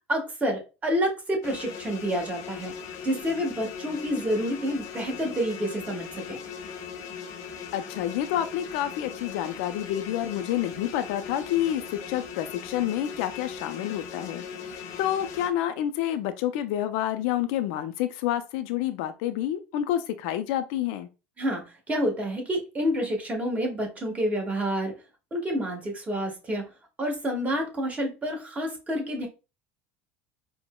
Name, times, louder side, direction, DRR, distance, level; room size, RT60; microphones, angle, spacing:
voice 1, 0.1-2.7 3.0-6.4 21.4-24.9 25.3-26.6 27.0-29.3, equal, 20° right, 1.3 m, -28 dB
sound 1, 1.4-15.5, left 7 dB, 50° left, 0.7 m, -39 dB
voice 2, 7.7-21.1, left 12 dB, 70° left, 0.3 m, -29 dB
4.3 x 2.0 x 2.2 m
hypercardioid pair, 85°, 7 cm